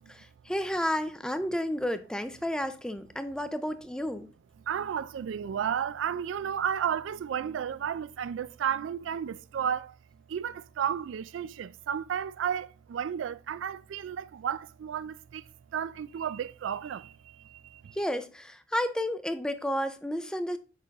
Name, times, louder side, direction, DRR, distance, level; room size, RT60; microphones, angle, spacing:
voice 1, 0.1-4.3 17.9-20.6, equal, 5° left, 0.4 m, -31 dB
voice 2, 4.7-10.0 10.3-15.4 15.7-18.0, right 8 dB, 85° right, 0.3 m, -33 dB
6.6 x 5.3 x 3.5 m
head